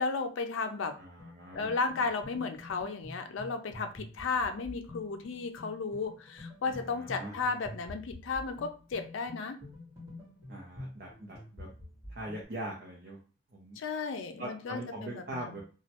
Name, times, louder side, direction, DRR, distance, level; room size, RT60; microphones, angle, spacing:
voice 1, 0.0-1.0 1.5-9.6 13.8-15.6, left 4 dB, 75° left, 7 dB, 0.4 m, -34 dB
voice 2, 1.0-1.7 6.7-7.3 10.5-11.7 12.1-13.2 13.5-13.8 14.4-15.6, right 1 dB, 50° right, -2 dB, 0.6 m, -42 dB
sound 1, 1.2-12.4, left 1 dB, 15° right, 1.6 m, -48 dB
3.0 x 2.2 x 2.8 m, 0.37 s
head